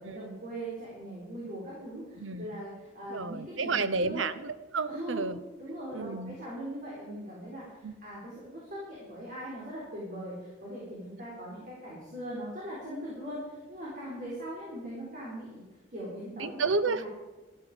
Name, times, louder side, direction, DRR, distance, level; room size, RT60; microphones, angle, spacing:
voice 1, 0.0-4.2 4.9-5.2 5.6-15.6 15.9-16.6 16.9-17.1, right 1 dB, 45° right, -6 dB, 4.1 m, -40 dB
voice 2, 2.2-2.6 3.1-5.4 5.9-6.3 7.8-7.9 14.3-14.4 16.3-17.1, right 4 dB, 85° right, 13 dB, 0.8 m, -31 dB
13.0 x 12.5 x 5.0 m, 1.2 s
head